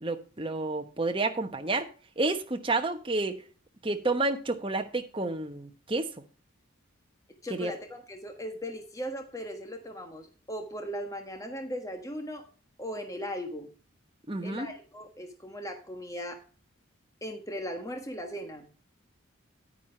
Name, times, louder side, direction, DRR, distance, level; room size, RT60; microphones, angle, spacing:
voice 1, 0.0-1.9 2.2-3.4 3.8-6.1 7.5-7.7 14.3-14.7, right 2 dB, 25° right, 1.1 m, -30 dB
voice 2, 7.4-12.4 12.8-13.7 14.4-16.4 17.2-18.7, equal, 15° left, 1.4 m, -38 dB
10.5 x 9.3 x 3.3 m
head